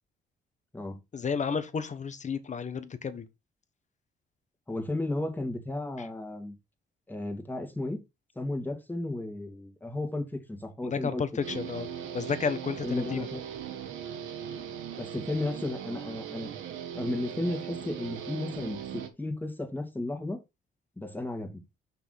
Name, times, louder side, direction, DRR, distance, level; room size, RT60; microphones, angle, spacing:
voice 1, 1.1-3.3 6.0-6.1 10.8-11.9 12.1-13.3, left 5 dB, 35° left, 1.2 m, -32 dB
voice 2, 4.7-6.6 7.1-8.0 8.4-11.2 11.5-11.6 12.8-13.4 15.0-16.5 16.9-20.4 21.0-21.6, left 2 dB, 10° left, 2.2 m, -34 dB
Guitar, 11.4-19.1, right 9 dB, 80° right, 1.4 m, -39 dB
6.0 x 5.8 x 4.1 m
cardioid pair, 90°, 20 cm